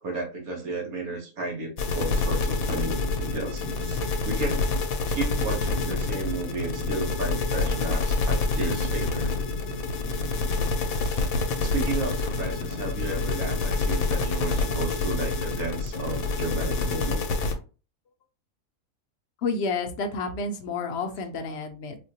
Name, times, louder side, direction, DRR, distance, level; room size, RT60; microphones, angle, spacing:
voice 1, 0.0-4.7 5.1-9.3 11.0-11.3 11.6-17.2, right 3 dB, 85° right, 1 dB, 1.4 m, -33 dB
sound 1, 1.8-17.5, left 3 dB, 75° left, 1.1 m, -27 dB
voice 2, 19.4-22.0, left 4 dB, 60° left, 5 dB, 0.8 m, -30 dB
4.1 x 2.3 x 2.7 m, 0.34 s
omnidirectional pair, 1.5 m